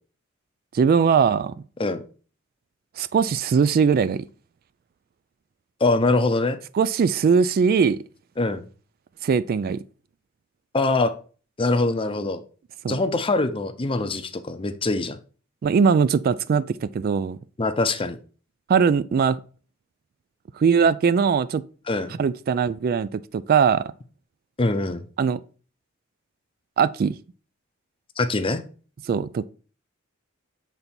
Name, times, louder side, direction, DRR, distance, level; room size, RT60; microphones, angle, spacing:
voice 1, 0.7-1.5 3.0-4.3 6.7-8.0 9.2-9.8 12.8-13.0 15.6-17.4 18.7-19.4 20.6-21.6 22.2-23.9 25.2-25.4 26.8-27.2 29.1-29.5, right 6 dB, 45° right, 0.3 m, -20 dB
voice 2, 5.8-6.6 8.4-8.7 10.7-11.1 11.6-12.4 12.9-15.2 17.6-18.2 21.9-22.2 24.6-25.1 28.2-28.6, left 2 dB, 25° left, 0.6 m, -23 dB
7.2 x 3.9 x 4.3 m
head